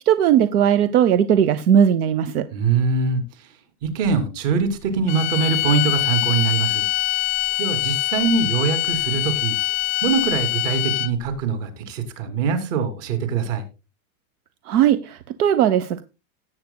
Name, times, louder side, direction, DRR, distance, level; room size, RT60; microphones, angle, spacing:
voice 1, 0.0-2.4 14.7-16.0, right 9 dB, 85° right, 13 dB, 1.0 m, -18 dB
voice 2, 2.5-3.5 3.8-6.9 7.6-9.6 10.0-13.6, right 5 dB, 55° right, 7 dB, 3.0 m, -23 dB
sound 1, 5.1-11.3, left 21 dB, 35° left, 0.5 m, -23 dB
17.5 x 8.2 x 2.2 m, 0.27 s
supercardioid pair, 175°, 44 cm